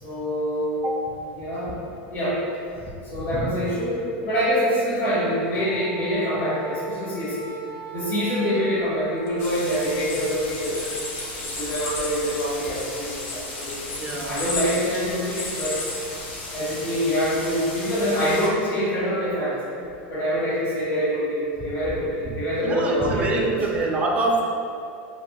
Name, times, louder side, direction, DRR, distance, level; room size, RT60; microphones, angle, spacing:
voice 1, 0.0-0.8 1.3-1.8 2.1-2.4 3.1-7.5 7.9-10.8 11.4-13.9 14.3-15.8 16.5-19.6 20.1-23.5, equal, 55° left, -10 dB, 0.9 m, -25 dB
voice 2, 0.8-1.2 3.3-3.5 14.0-14.4 22.6-24.4, right 2 dB, 20° right, 0 dB, 0.3 m, -25 dB
Wind instrument woodwind instrument, 5.5-9.9, right 4 dB, 75° right, 0.5 m, -40 dB
sound 1, 9.3-16.7, left 3 dB, 40° left, 0.5 m, -35 dB
sound 2, 9.4-18.5, left 2 dB, 85° left, 0.6 m, -36 dB
2.8 x 2.0 x 2.9 m, 2.5 s
supercardioid pair, 135°, 6 cm